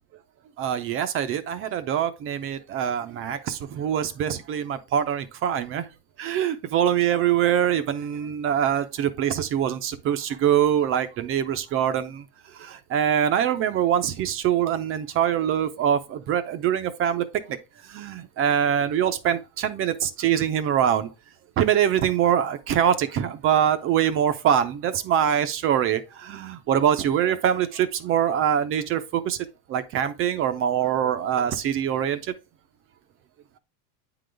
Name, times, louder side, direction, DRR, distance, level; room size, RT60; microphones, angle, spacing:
voice 1, 0.6-5.9 6.2-12.3 12.5-17.6 17.8-21.1 21.6-32.3, right 9 dB, 30° right, 0.5 m, -24 dB
9.2 x 3.9 x 3.3 m
supercardioid pair, 155°, 45 cm